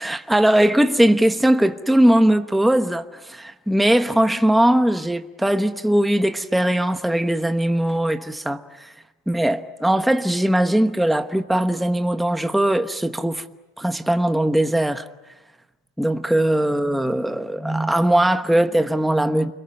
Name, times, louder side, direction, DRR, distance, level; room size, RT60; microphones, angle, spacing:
voice 1, 0.0-8.9 9.3-13.4 13.8-15.0 16.0-19.5, right 1 dB, ahead, 1.1 m, -20 dB
30.0 x 22.5 x 8.9 m
cardioid pair, 145°, 40 cm